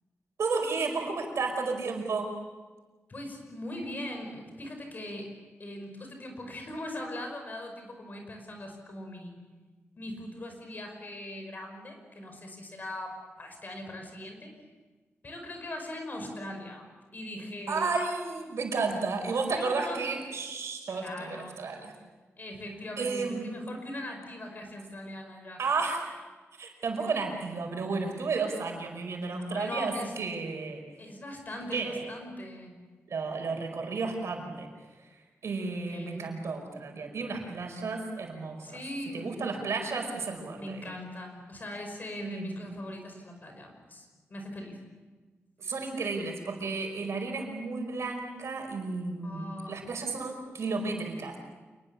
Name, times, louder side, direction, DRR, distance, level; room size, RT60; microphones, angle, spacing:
voice 1, 0.4-2.3 17.7-21.9 23.0-23.7 25.6-26.1 26.6-30.8 31.7-32.1 33.1-34.7 35.0-35.2 35.4-38.8 39.1-40.9 42.2-42.7 45.6-51.4, right 4 dB, 80° right, 3 dB, 5.2 m, -32 dB
voice 2, 3.1-5.3 5.6-9.4 10.0-14.5 15.2-16.9 17.1-17.9 19.5-20.1 20.9-21.5 22.4-25.6 29.4-30.1 31.0-32.8 35.9-36.4 38.6-39.4 40.6-44.8 49.2-49.8, left 1 dB, 40° left, 4 dB, 5.5 m, -40 dB
27.5 x 21.5 x 7.1 m, 1.3 s
wide cardioid pair, 160°, 5 cm